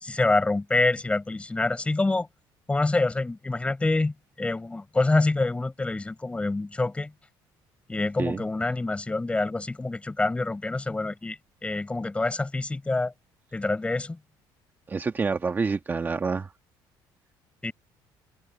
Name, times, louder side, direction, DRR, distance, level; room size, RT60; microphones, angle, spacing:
voice 1, 0.0-2.3 2.7-7.1 7.9-13.1 13.5-14.2 17.6-17.7, left 2 dB, 15° left, 5.4 m, -26 dB
voice 2, 14.9-16.5, right 4 dB, 25° right, 1.4 m, -27 dB
cardioid pair, 120°, 8 cm